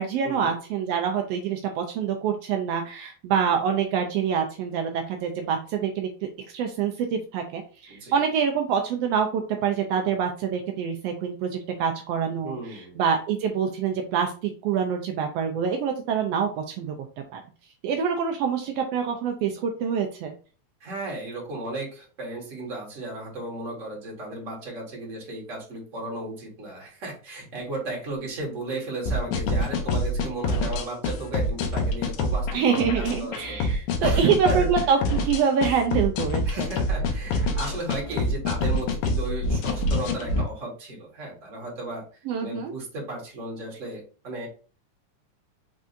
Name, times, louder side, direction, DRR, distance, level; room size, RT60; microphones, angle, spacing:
voice 1, 0.0-6.1 6.5-16.9 17.3-17.4 17.8-20.3 32.5-36.7 42.3-42.7, right 7 dB, 90° right, 4 dB, 1.4 m, -26 dB
voice 2, 7.9-8.2 12.4-13.0 20.8-34.7 36.4-42.0 42.4-44.5, right 2 dB, 35° right, -1 dB, 1.4 m, -35 dB
sound 1, 29.1-40.4, left 1 dB, 80° left, 2.1 m, -26 dB
5.4 x 3.6 x 2.6 m, 0.37 s
omnidirectional pair, 3.5 m